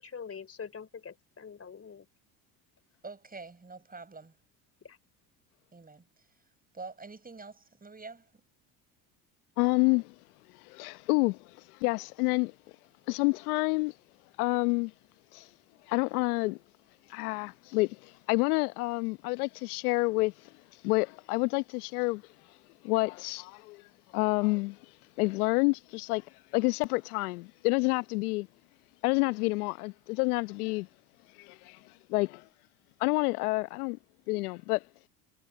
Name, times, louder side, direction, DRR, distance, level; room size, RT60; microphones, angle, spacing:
voice 1, 0.0-2.1 4.8-5.0, left 6 dB, 30° left, 3.7 m, -44 dB
voice 2, 3.0-4.3 5.7-6.0 6.7-8.3, right 4 dB, 20° right, 6.6 m, -46 dB
voice 3, 9.6-10.1 10.7-11.4 11.8-12.5 13.1-13.9 14.4-14.9 15.3-15.5 15.9-16.6 17.1-20.3 20.8-22.2 22.8-23.8 24.1-24.8 25.2-26.2 26.5-28.5 29.0-30.9 31.4-31.8 32.1-32.4 33.0-34.0 34.3-34.8, left 26 dB, 80° left, 1.0 m, -28 dB
hypercardioid pair, 70°, 44 cm